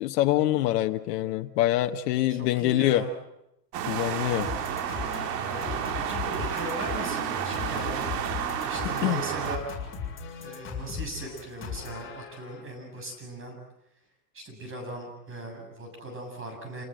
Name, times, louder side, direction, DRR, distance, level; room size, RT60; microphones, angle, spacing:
voice 1, 0.0-3.0 3.9-4.5 9.0-9.2, left 14 dB, 65° left, 7 dB, 1.3 m, -25 dB
voice 2, 2.3-3.1 5.2-8.0 8.6-9.6 10.4-13.6 14.3-16.8, right 1 dB, 25° right, 3 dB, 7.3 m, -39 dB
sound 1, 3.7-9.6, right 9 dB, 75° right, 2.7 m, -31 dB
sound 2, 4.4-12.6, left 6 dB, 25° left, 7.0 m, -38 dB
28.0 x 19.5 x 7.8 m, 0.85 s
supercardioid pair, 120°, 49 cm